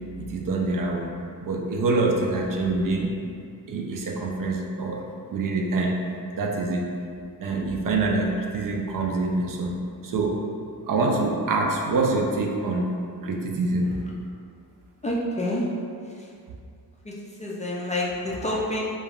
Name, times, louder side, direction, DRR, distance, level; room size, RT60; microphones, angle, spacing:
voice 1, 0.2-1.1 1.4-3.1 3.7-5.0 5.3-6.0 6.3-6.9 7.4-10.4 10.9-12.9 13.2-14.0, right 3 dB, 55° right, 0 dB, 0.4 m, -25 dB
voice 2, 15.0-15.7 16.1-16.3 17.0-18.8, left 1 dB, 20° left, -5 dB, 0.3 m, -28 dB
2.3 x 2.1 x 3.5 m, 2.4 s
cardioid pair, 60°, 40 cm